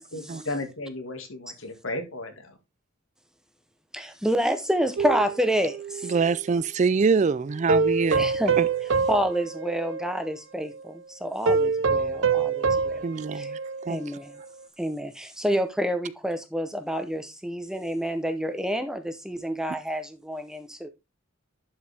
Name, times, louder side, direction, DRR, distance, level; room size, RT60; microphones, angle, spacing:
voice 1, 0.1-2.6, left 2 dB, 70° left, 1.9 m, -34 dB
voice 2, 3.9-6.1 8.2-8.5 9.1-13.0 13.4-13.5 13.8-14.3 14.8-20.9, equal, 5° right, 0.7 m, -28 dB
sound 1, 5.0-6.5 7.7-10.3 10.6-10.8 11.5-14.0 14.4-14.5, right 5 dB, 65° right, 0.7 m, -26 dB
voice 3, 6.0-8.2 8.6-8.7 13.0-13.6 13.9-14.0, right 5 dB, 35° right, 0.3 m, -24 dB
11.5 x 4.9 x 3.4 m
head